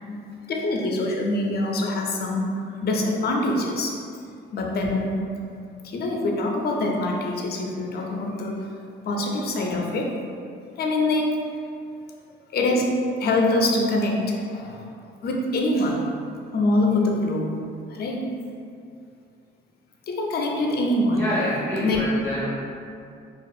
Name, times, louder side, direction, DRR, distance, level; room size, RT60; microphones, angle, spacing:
voice 1, 0.5-2.5 2.8-4.0 4.5-5.2 5.9-8.7 9.1-10.2 10.8-11.5 12.5-14.9 15.2-16.1 16.5-17.6 17.9-18.3 20.1-21.3 21.8-22.0, left 2 dB, 55° left, 0 dB, 0.4 m, -24 dB
voice 2, 21.1-22.5, equal, 10° left, -8 dB, 0.6 m, -27 dB
2.4 x 2.3 x 2.6 m, 2.4 s
cardioid pair, 90°, 20 cm